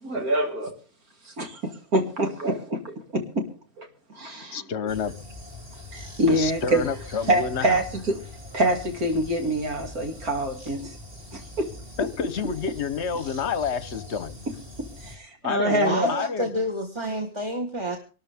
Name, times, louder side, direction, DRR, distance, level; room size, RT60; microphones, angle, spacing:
voice 1, 0.0-0.8 1.3-3.5 3.8-3.9 4.1-4.6 5.9-6.8 7.3-8.2 8.5-11.0 11.3-11.7 14.8-16.1, right 1 dB, 75° right, 3.0 m, -25 dB
voice 2, 4.5-5.1 6.3-7.8 12.0-14.4 15.4-16.5, left 6 dB, 55° left, 1.1 m, -29 dB
sound 1, 4.9-15.2, left 2 dB, 35° right, 3.5 m, -42 dB
voice 3, 15.8-18.0, equal, 20° right, 1.4 m, -29 dB
24.5 x 13.0 x 3.5 m
omnidirectional pair, 1.6 m